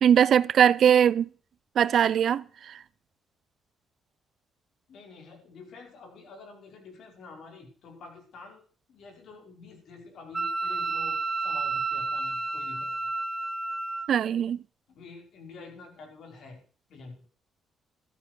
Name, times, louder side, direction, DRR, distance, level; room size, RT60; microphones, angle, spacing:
voice 1, 0.0-1.3 1.8-2.7 14.1-14.6, right 9 dB, 65° right, 0.6 m, -21 dB
voice 2, 4.9-13.1 14.9-16.6 16.9-17.2, left 3 dB, 70° left, 4.9 m, -48 dB
Wind instrument woodwind instrument, 10.3-14.1, right 3 dB, 10° right, 2.4 m, -30 dB
13.5 x 12.5 x 4.7 m
cardioid pair, 90°, 0 cm